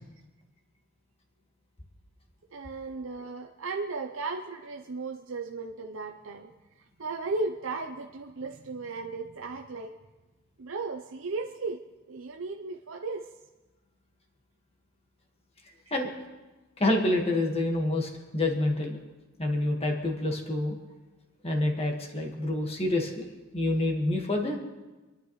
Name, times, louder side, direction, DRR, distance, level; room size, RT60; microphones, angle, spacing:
voice 1, 2.5-9.9 10.6-11.8 12.1-13.3, right 3 dB, 70° right, 3 dB, 0.7 m, -35 dB
voice 2, 16.8-19.0 19.4-20.7 21.4-23.3 23.5-24.6, left 1 dB, 30° left, 1 dB, 1.6 m, -27 dB
27.5 x 11.5 x 3.2 m, 1.2 s
head